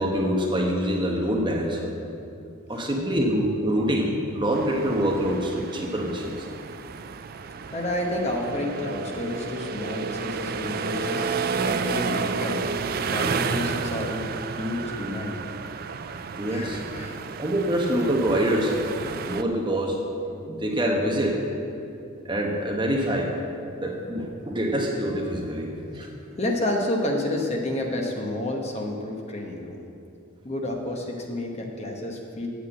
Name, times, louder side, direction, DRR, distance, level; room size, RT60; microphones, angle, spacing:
voice 1, 0.0-1.9 2.7-6.5 13.2-13.5 16.4-16.8 17.4-18.8 19.3-20.0 20.5-21.4 22.2-23.3 23.8-26.1, equal, 20° right, 0 dB, 1.1 m, -25 dB
sound 1, 4.5-19.4, right 5 dB, 45° right, 0.3 m, -31 dB
voice 2, 7.6-11.2 11.6-12.6 13.1-14.3 14.6-15.3 16.4-17.2 26.3-29.8 30.4-32.5, left 1 dB, 30° left, 1 dB, 1.0 m, -30 dB
8.3 x 8.2 x 7.6 m, 2.6 s
head